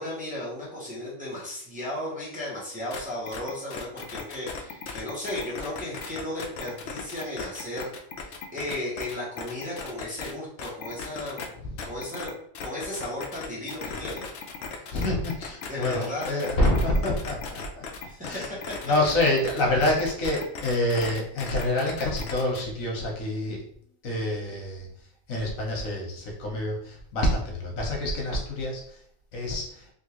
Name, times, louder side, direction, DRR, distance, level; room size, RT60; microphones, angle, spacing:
voice 1, 0.0-7.9 8.2-11.5 11.8-12.4 12.6-14.2 15.7-16.3 18.1-18.4, left 1 dB, 5° right, -7 dB, 0.9 m, -35 dB
sound 1, 2.9-3.0 3.3-10.3 10.6-11.5 11.8-22.7, left 5 dB, 65° left, 0.8 m, -37 dB
voice 2, 14.9-17.8 18.2-18.5 18.8-23.6 24.0-24.9 25.3-28.8 29.3-29.8, left 1 dB, 80° left, -1 dB, 1.4 m, -27 dB
3.5 x 2.6 x 2.9 m, 0.66 s
omnidirectional pair, 1.4 m